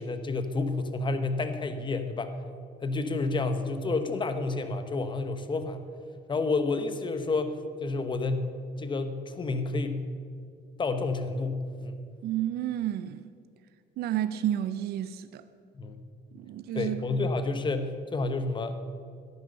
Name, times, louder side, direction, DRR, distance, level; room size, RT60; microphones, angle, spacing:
voice 1, 0.0-2.3 2.8-5.8 6.3-8.5 8.8-10.0 10.8-12.0 15.7-15.9 16.7-18.8, left 3 dB, 30° left, 1.2 m, -30 dB
voice 2, 12.2-13.2 14.0-15.4 16.3-17.2, right 11 dB, 70° right, 0.6 m, -31 dB
14.0 x 10.5 x 6.8 m
cardioid pair, 110°, 17 cm